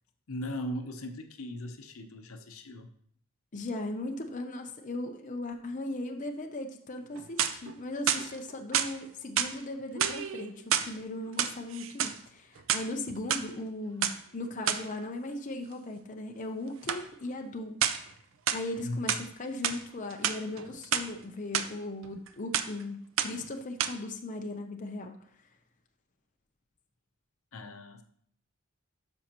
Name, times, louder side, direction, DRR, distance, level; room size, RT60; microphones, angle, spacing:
voice 1, 0.3-2.9 18.8-19.2 27.5-28.0, left 1 dB, 80° left, 7 dB, 0.8 m, -38 dB
voice 2, 3.5-17.8 18.5-25.1, left 2 dB, 35° left, 4 dB, 0.6 m, -38 dB
sound 1, 7.1-7.7 8.1-8.9 9.4-9.6 9.9-10.9 11.3-12.2 12.6-13.4 14.0-14.2 14.7-14.9 16.9-17.1 17.8-18.1 18.5-19.3 19.6-19.8 20.1-21.1 21.5-21.7 22.0-22.3 22.5-22.8 23.2-23.5 23.8-23.9, right 9 dB, 65° right, 0.5 m, -29 dB
12.5 x 5.4 x 3.0 m, 0.64 s
head